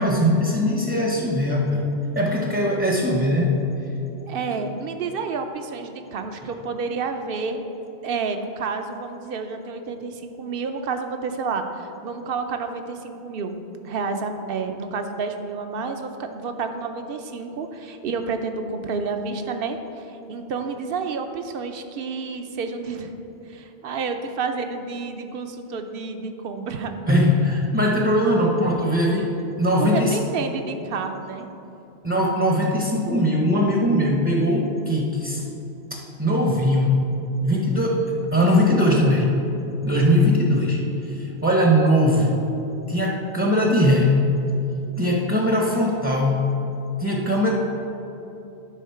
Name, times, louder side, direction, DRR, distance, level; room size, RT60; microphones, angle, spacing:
voice 1, 0.0-1.8 2.2-3.6 27.1-30.2 32.0-35.5 35.9-36.9 37.4-39.3 39.8-42.4 42.9-44.3 45.0-46.5 47.0-47.5, equal, 15° right, -1 dB, 0.6 m, -20 dB
voice 2, 4.3-7.6 8.0-13.6 13.8-23.1 23.5-27.0 29.8-31.5, right 4 dB, 60° right, 7 dB, 0.8 m, -30 dB
9.9 x 4.0 x 5.6 m, 2.9 s
omnidirectional pair, 1.1 m